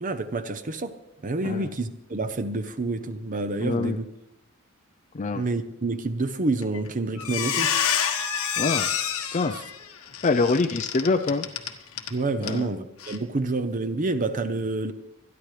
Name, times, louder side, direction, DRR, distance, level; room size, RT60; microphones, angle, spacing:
voice 1, 0.0-0.9 1.2-4.1 5.3-7.8 9.5-9.6 12.1-14.9, right 2 dB, 40° right, 10 dB, 0.7 m, -28 dB
voice 2, 3.6-4.0 5.1-5.4 8.6-8.9 9.3-9.6 10.2-11.5 12.4-12.7, left 3 dB, 35° left, 7 dB, 0.5 m, -25 dB
Squeak, 6.6-6.9 7.2-12.1 12.4-12.6 13.0-13.2, left 8 dB, 85° left, 1.4 m, -28 dB
26.0 x 10.5 x 3.3 m, 0.85 s
head